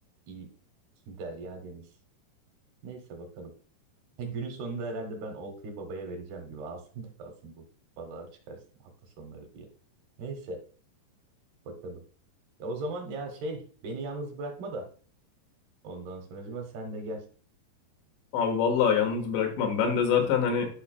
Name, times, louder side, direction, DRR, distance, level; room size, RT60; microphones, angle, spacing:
voice 1, 1.1-1.9 2.8-3.5 4.2-7.6 8.0-8.6 9.2-9.7 10.2-10.6 11.7-12.0 12.6-14.9 15.8-17.2 20.2-20.3, right 2 dB, 70° right, 3 dB, 3.1 m, -38 dB
voice 2, 18.3-20.7, left 7 dB, 85° left, 3 dB, 3.7 m, -25 dB
12.0 x 5.6 x 2.2 m, 0.40 s
omnidirectional pair, 4.9 m